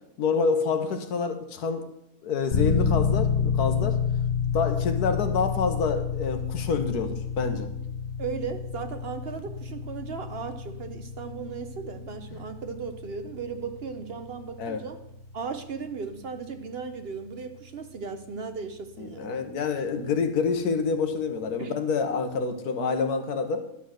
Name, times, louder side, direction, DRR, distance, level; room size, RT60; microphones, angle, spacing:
voice 1, 0.2-1.9 2.2-4.0 4.5-7.7 12.3-12.4 14.6-14.8 19.0-23.6, left 5 dB, 80° left, 7 dB, 1.6 m, -27 dB
sound 1, 2.5-19.3, left 6 dB, 35° left, 1.1 m, -30 dB
voice 2, 8.2-15.0 15.3-19.4 21.6-21.7, right 5 dB, 55° right, 8 dB, 0.7 m, -36 dB
11.0 x 6.2 x 6.4 m, 0.80 s
omnidirectional pair, 1.6 m